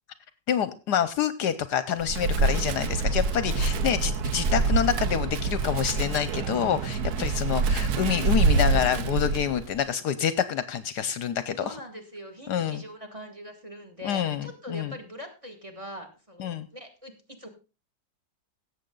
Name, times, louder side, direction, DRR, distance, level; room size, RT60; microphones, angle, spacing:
voice 1, 0.5-11.8 12.5-12.8 14.0-14.9 16.4-16.7, left 9 dB, 70° left, 14 dB, 1.2 m, -27 dB
Wind, 2.0-9.8, right 4 dB, 65° right, 1.3 m, -26 dB
voice 2, 11.6-17.1 17.4-17.5, equal, 20° right, 6 dB, 2.0 m, -42 dB
17.0 x 7.5 x 3.8 m, 0.32 s
omnidirectional pair, 1.9 m